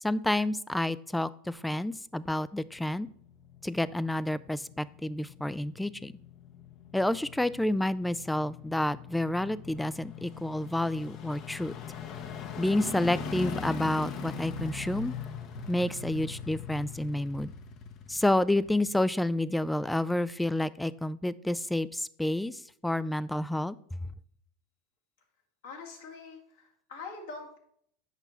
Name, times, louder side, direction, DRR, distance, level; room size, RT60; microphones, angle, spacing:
voice 1, 0.0-3.1 3.6-6.1 6.9-11.7 12.6-15.1 15.7-17.5 18.1-23.8, left 1 dB, 5° left, 18 dB, 0.3 m, -29 dB
sound 1, 2.8-19.3 19.7-19.8, left 6 dB, 50° left, 1.0 m, -41 dB
voice 2, 25.6-27.6, left 4 dB, 75° left, 1 dB, 2.1 m, -44 dB
8.2 x 5.6 x 4.3 m, 0.66 s
hypercardioid pair, 95°, 0 cm